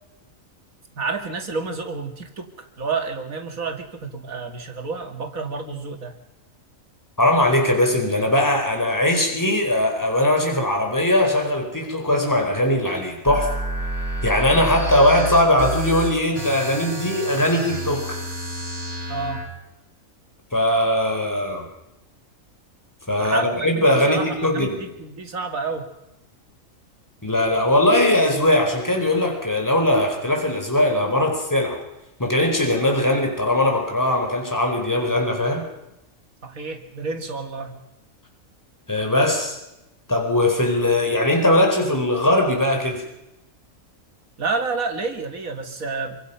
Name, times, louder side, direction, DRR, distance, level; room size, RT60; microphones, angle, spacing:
voice 1, 1.0-6.2 19.1-19.5 23.2-25.9 36.4-37.8 44.4-46.2, right 4 dB, 90° right, 4 dB, 2.6 m, -30 dB
voice 2, 7.2-13.5 14.2-18.2 20.5-21.7 23.1-24.8 27.2-31.8 32.2-35.7 38.9-39.6 40.1-43.0, left 1 dB, 15° left, 3 dB, 4.4 m, -20 dB
sound 1, 13.3-19.5, right 1 dB, 60° right, 5.2 m, -29 dB
27.0 x 24.5 x 5.7 m, 0.92 s
omnidirectional pair, 1.4 m